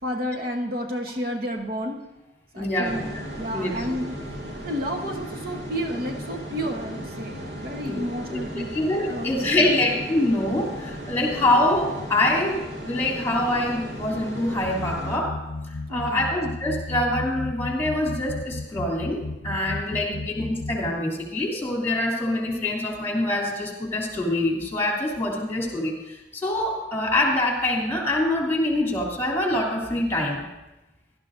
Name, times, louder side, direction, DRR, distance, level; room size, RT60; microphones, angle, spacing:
voice 1, 0.0-2.0 2.5-4.2 4.6-8.7 9.0-9.8 15.9-16.3 20.1-20.3, equal, 55° right, 2 dB, 1.1 m, -31 dB
voice 2, 2.5-3.2 3.5-4.0 7.9-15.3 15.9-30.4, left 1 dB, 15° left, -2 dB, 2.7 m, -25 dB
sound 1, 2.8-15.2, equal, 70° right, 1.9 m, -36 dB
sound 2, 14.6-20.9, left 2 dB, 70° left, 0.6 m, -34 dB
17.5 x 12.0 x 2.6 m, 1.0 s
head